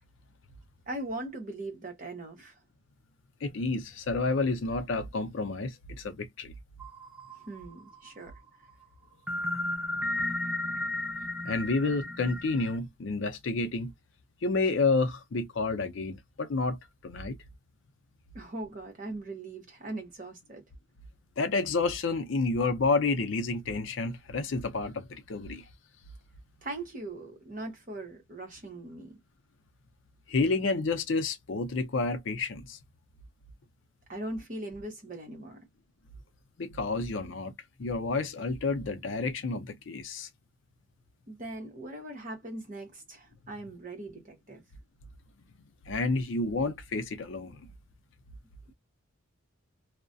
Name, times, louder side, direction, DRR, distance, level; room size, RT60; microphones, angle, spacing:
voice 1, 0.9-2.5 7.4-8.3 18.3-20.6 26.6-29.2 34.1-35.6 41.3-44.6, right 2 dB, 40° right, 0.9 m, -40 dB
voice 2, 3.4-6.5 11.4-13.9 14.4-16.8 17.0-17.4 21.4-25.6 30.3-32.8 36.6-37.5 37.8-40.3 45.9-47.7, left 3 dB, 65° left, 0.5 m, -30 dB
sound 1, 6.8-8.1 9.3-12.8, left 1 dB, 5° right, 0.4 m, -34 dB
2.3 x 2.1 x 2.5 m
head